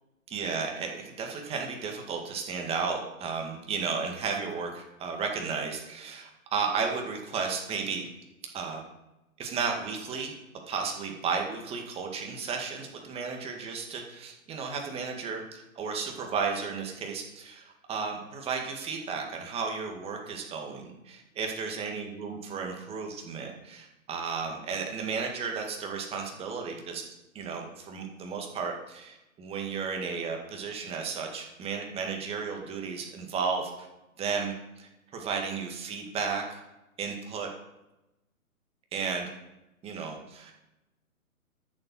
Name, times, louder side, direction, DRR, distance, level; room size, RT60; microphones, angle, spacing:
voice 1, 0.3-8.1 8.5-8.8 9.4-10.3 10.7-27.0 27.3-33.9 34.2-36.6 37.0-37.5 38.9-39.3 39.8-40.5, right 5 dB, 15° right, 2 dB, 1.9 m, -33 dB
13.0 x 7.6 x 6.2 m, 0.98 s
figure-of-eight pair, 130°, 42 cm